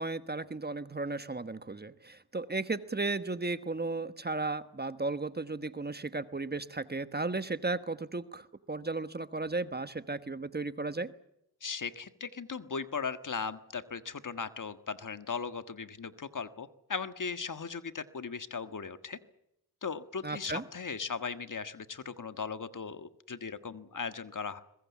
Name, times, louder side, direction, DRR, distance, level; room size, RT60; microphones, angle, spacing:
voice 1, 0.0-11.1 20.2-20.6, right 3 dB, 25° right, 12 dB, 1.2 m, -35 dB
voice 2, 11.6-19.2 19.8-24.6, left 5 dB, 50° left, 10 dB, 1.6 m, -38 dB
22.5 x 20.5 x 8.4 m, 0.79 s
cardioid pair, 70°, 39 cm